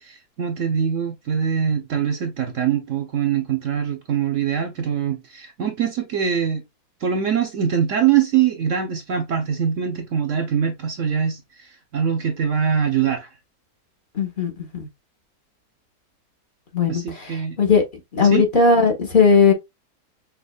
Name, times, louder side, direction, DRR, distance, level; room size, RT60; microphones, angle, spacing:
voice 1, 0.0-6.6 7.0-13.3 16.9-17.6 18.2-18.4, right 8 dB, 60° right, 1.0 m, -23 dB
voice 2, 14.1-14.9 16.7-17.0 17.6-17.8 18.1-19.5, left 5 dB, 35° left, 1.4 m, -17 dB
5.8 x 2.8 x 2.4 m
omnidirectional pair, 1.6 m